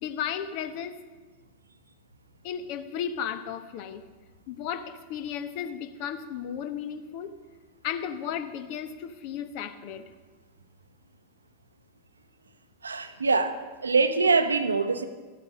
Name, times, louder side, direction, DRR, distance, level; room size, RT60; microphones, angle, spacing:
voice 1, 0.0-1.0 2.4-4.0 4.5-7.3 7.8-10.1, left 8 dB, 45° left, 11 dB, 0.9 m, -34 dB
voice 2, 12.8-13.6 13.8-15.0, right 4 dB, 75° right, 11 dB, 0.8 m, -23 dB
13.5 x 8.7 x 6.4 m, 1.3 s
figure-of-eight pair, 90°, 0 cm